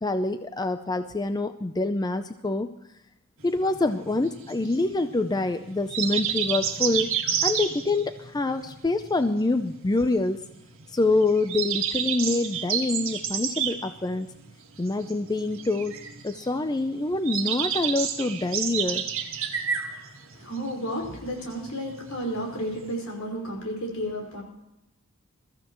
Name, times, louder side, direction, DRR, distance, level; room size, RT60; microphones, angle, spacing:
voice 1, 0.0-2.7 3.4-7.1 7.4-10.4 10.9-14.3 14.8-16.0 16.2-19.0, left 2 dB, 20° left, 9 dB, 0.5 m, -26 dB
sound 1, 3.4-22.9, right 8 dB, 65° right, 1.8 m, -31 dB
voice 2, 20.3-24.4, equal, 75° left, 0 dB, 4.9 m, -32 dB
22.0 x 14.5 x 3.1 m, 0.90 s
head